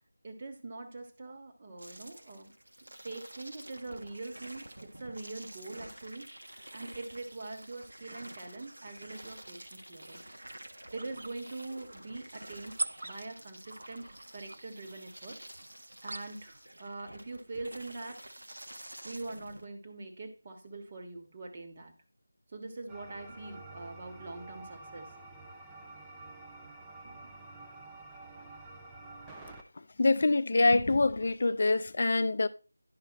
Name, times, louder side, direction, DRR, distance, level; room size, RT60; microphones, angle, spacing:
voice 1, 0.2-2.5 3.0-10.2 10.9-15.4 16.0-18.6 19.0-21.9 22.5-25.1 27.0-27.4, right 2 dB, 30° right, 1.5 m, -43 dB
sound 1, 1.8-19.7, right 1 dB, 75° right, 1.4 m, -49 dB
sound 2, 10.1-16.6, right 2 dB, 50° right, 0.7 m, -44 dB
sound 3, 22.9-29.6, right 2 dB, 5° right, 0.7 m, -49 dB
voice 2, 29.8-32.5, left 3 dB, 45° left, 0.6 m, -25 dB
10.5 x 5.5 x 4.2 m
figure-of-eight pair, 165°, 0 cm